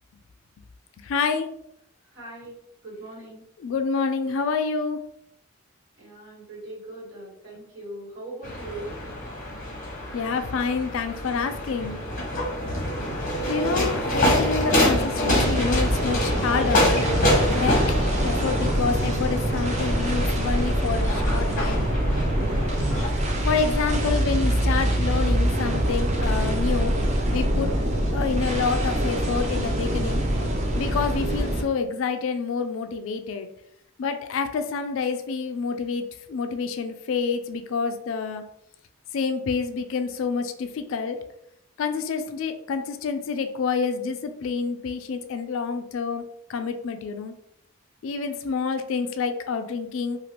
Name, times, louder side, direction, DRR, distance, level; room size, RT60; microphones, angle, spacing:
voice 1, 1.0-1.5 3.6-5.0 10.1-12.0 13.5-16.9 17.5-21.9 23.4-26.9 27.3-27.7 28.1-30.2 30.8-33.5 34.0-38.4 39.1-41.2 41.8-46.2 46.5-47.3 48.0-50.2, left 5 dB, 65° left, 8 dB, 0.3 m, -28 dB
voice 2, 2.1-2.5 2.8-3.4 6.0-9.0, right 1 dB, 55° right, -6 dB, 1.5 m, -40 dB
sound 1, 8.4-23.1, left 1 dB, 40° left, 0.8 m, -26 dB
sound 2, 15.3-31.6, right 1 dB, 30° right, 0.5 m, -24 dB
3.1 x 2.4 x 2.8 m, 0.76 s
head